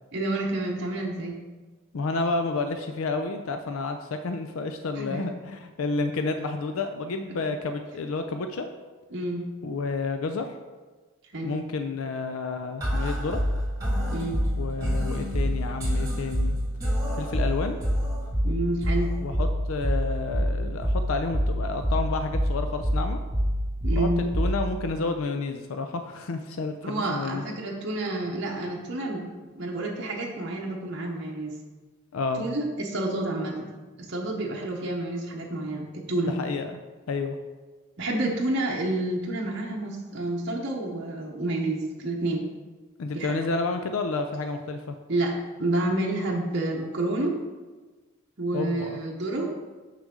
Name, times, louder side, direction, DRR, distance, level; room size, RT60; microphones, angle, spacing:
voice 1, 0.1-1.3 5.0-5.2 9.1-9.5 11.3-11.6 14.1-14.4 18.4-19.1 23.8-24.2 26.8-29.2 29.5-31.5 32.4-33.7 34.0-36.3 38.0-42.4 43.1-43.5 45.1-47.4 48.4-49.5, right 2 dB, 55° right, -2 dB, 0.9 m, -29 dB
voice 2, 1.9-8.7 9.6-10.5 11.4-13.4 14.6-16.5 17.1-17.8 19.2-23.2 24.0-27.5 32.1-32.4 36.3-36.7 37.1-37.4 43.0-45.0 48.5-49.0, left 3 dB, 75° left, 7 dB, 0.4 m, -30 dB
sound 1, 12.8-24.8, equal, 15° right, 2.0 m, -27 dB
6.6 x 6.2 x 3.7 m, 1.3 s
head